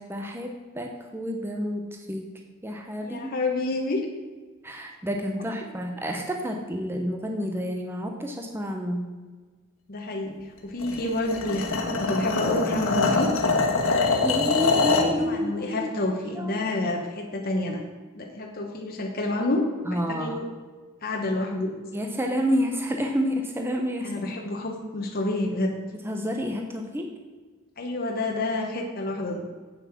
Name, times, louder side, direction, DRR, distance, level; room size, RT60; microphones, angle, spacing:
voice 1, 0.0-2.3 2.6-3.3 4.6-9.1 14.2-15.9 16.3-16.6 19.9-20.4 21.9-24.3 25.9-27.1, equal, 10° right, 3 dB, 0.7 m, -29 dB
voice 2, 3.0-4.1 9.9-10.3 10.6-13.3 15.2-17.8 18.1-20.5 21.0-21.7 24.0-25.8 27.8-29.4, left 2 dB, 45° left, 1 dB, 1.0 m, -28 dB
sound 1, 10.8-15.2, left 4 dB, 75° left, 1.5 m, -24 dB
8.4 x 7.2 x 5.9 m, 1.4 s
head